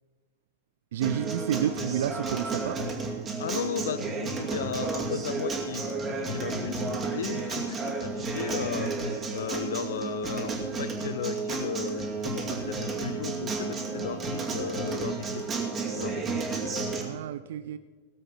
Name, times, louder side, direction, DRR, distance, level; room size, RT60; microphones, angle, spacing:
voice 1, 0.9-2.8 17.0-17.8, right 11 dB, 60° right, 14 dB, 0.4 m, -30 dB
Acoustic guitar, 1.0-17.0, right 3 dB, 25° right, 2.4 m, -32 dB
voice 2, 3.4-8.9 9.3-15.4 15.9-16.3, left 8 dB, 60° left, 16 dB, 0.6 m, -35 dB
18.0 x 7.6 x 6.0 m, 1.4 s
figure-of-eight pair, 90°, 0 cm